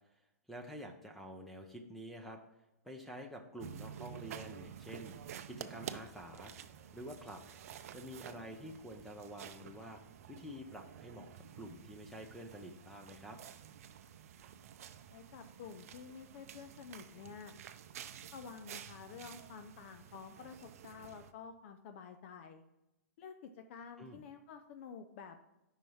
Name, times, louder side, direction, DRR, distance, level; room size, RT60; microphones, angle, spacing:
voice 1, 0.5-2.4 2.8-5.1 5.5-7.4 7.9-10.0 10.3-13.4 24.0-24.2, equal, ahead, 3 dB, 0.6 m, -48 dB
sound 1, 3.6-21.3, right 9 dB, 65° right, 0.5 m, -51 dB
voice 2, 15.1-17.5 18.3-22.6 23.2-25.4, left 6 dB, 50° left, 7 dB, 0.5 m, -50 dB
5.6 x 4.4 x 5.5 m, 0.93 s
hypercardioid pair, 135°, 9 cm